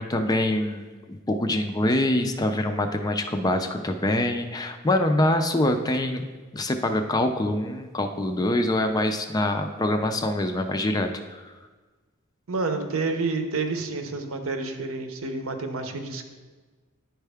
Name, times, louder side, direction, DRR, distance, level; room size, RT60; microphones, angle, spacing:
voice 1, 0.0-6.2 6.5-11.5, left 1 dB, 15° left, 6 dB, 0.4 m, -25 dB
voice 2, 5.7-6.0 12.5-16.3, right 3 dB, 65° right, 6 dB, 0.7 m, -29 dB
10.0 x 4.5 x 3.4 m, 1.4 s
head